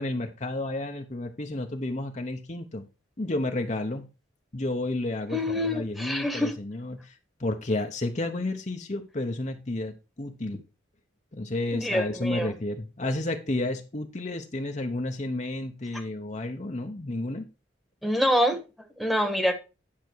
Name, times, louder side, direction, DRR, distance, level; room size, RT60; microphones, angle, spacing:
voice 1, 0.0-2.8 3.2-4.1 4.5-10.6 11.3-17.4, left 2 dB, 40° left, 4 dB, 0.9 m, -31 dB
voice 2, 5.3-6.5 11.7-12.5 18.0-18.6 19.0-19.6, equal, ahead, 6 dB, 1.3 m, -26 dB
10.5 x 6.0 x 4.6 m, 0.30 s
head